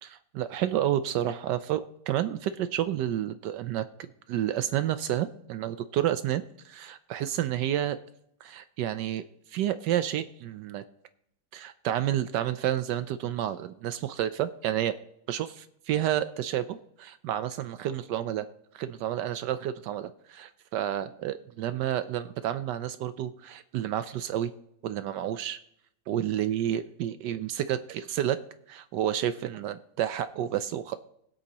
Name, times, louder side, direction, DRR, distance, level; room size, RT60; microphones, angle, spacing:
voice 1, 0.0-3.8 4.3-8.0 8.4-9.2 9.5-10.8 11.5-14.9 15.3-18.5 18.7-24.5 24.8-25.6 26.1-28.4 28.7-31.0, right 11 dB, 80° right, 12 dB, 1.0 m, -30 dB
20.5 x 8.0 x 2.9 m, 0.73 s
omnidirectional pair, 2.4 m